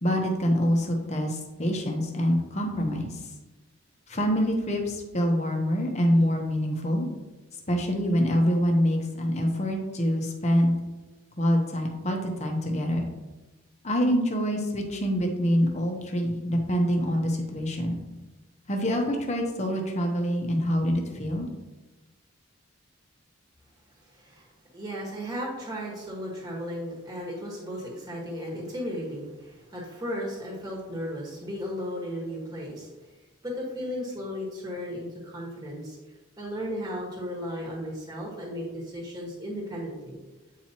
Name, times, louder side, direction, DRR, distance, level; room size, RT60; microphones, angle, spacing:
voice 1, 0.0-3.2 4.1-7.1 7.7-10.8 11.4-13.1 13.8-18.0 18.7-21.5, equal, 30° left, 2 dB, 0.9 m, -25 dB
voice 2, 24.0-24.4 24.7-32.9 33.4-36.0 36.4-40.2, equal, 20° right, -3 dB, 1.4 m, -35 dB
8.5 x 4.5 x 2.9 m, 1.1 s
head